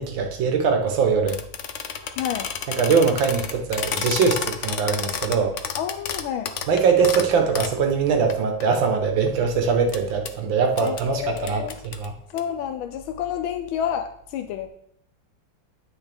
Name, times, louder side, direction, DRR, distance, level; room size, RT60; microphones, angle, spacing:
voice 1, 0.0-1.4 2.8-5.6 6.7-12.1, right 5 dB, 70° right, 4 dB, 1.9 m, -22 dB
sound 1, 1.3-7.8 8.3-8.4 8.6-9.4 9.9-10.0 10.3-10.4 10.8-11.0 11.4-12.4, left 7 dB, 70° left, 0.7 m, -31 dB
voice 2, 2.2-2.5 5.8-6.5 10.8-11.8 12.3-14.7, left 9 dB, 85° left, 6 dB, 1.5 m, -29 dB
10.5 x 6.3 x 3.5 m, 0.67 s
omnidirectional pair, 2.2 m